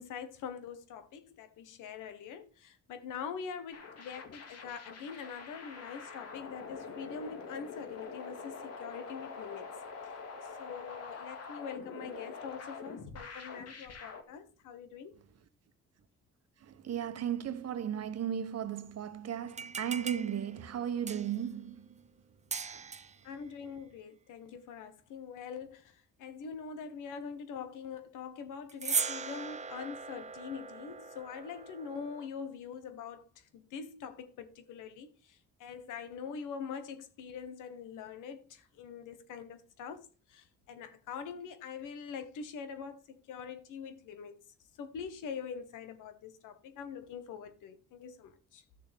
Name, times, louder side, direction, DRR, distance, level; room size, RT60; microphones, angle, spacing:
voice 1, 0.0-9.7 10.6-15.1 23.2-44.4 44.8-48.6, left 6 dB, 90° left, 1.5 m, -44 dB
sound 1, 3.7-14.2, left 5 dB, 55° left, 2.4 m, -45 dB
voice 2, 16.6-22.0 22.7-22.9, right 9 dB, 55° right, 1.1 m, -36 dB
sound 2, 19.5-21.5 22.5-23.2 28.7-32.3, right 5 dB, 25° right, 0.6 m, -39 dB
13.5 x 6.7 x 3.6 m
cardioid pair, 90°, 30 cm